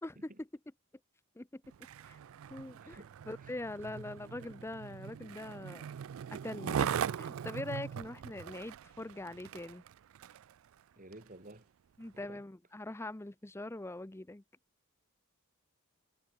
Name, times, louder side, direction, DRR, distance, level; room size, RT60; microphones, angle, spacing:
voice 1, 0.0-0.5 1.4-1.6 2.0-2.2 2.5-3.0 3.2-5.9 6.3-9.8 12.0-14.4, left 2 dB, 10° left, 0.6 m, -43 dB
Skateboard, 1.7-10.5 11.1-11.2, right 8 dB, 70° right, 0.3 m, -40 dB
voice 2, 2.8-3.1 3.4-3.5 3.8-4.1 11.0-11.7 12.1-12.4, right 1 dB, 40° right, 3.5 m, -53 dB
head